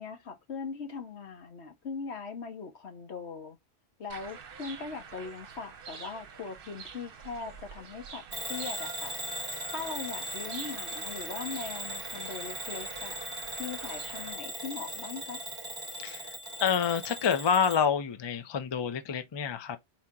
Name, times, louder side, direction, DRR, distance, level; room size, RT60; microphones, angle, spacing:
voice 1, 0.0-3.6 4.0-9.2 9.7-13.2 13.6-15.4, left 5 dB, 80° left, 1.3 m, -40 dB
sound 1, 4.1-14.3, right 6 dB, 60° right, 0.9 m, -47 dB
Bell / Alarm, 8.3-17.9, right 1 dB, 25° right, 0.7 m, -39 dB
voice 2, 16.0-16.3 16.6-19.8, left 7 dB, 35° left, 0.4 m, -28 dB
4.3 x 2.8 x 3.6 m
omnidirectional pair, 1.1 m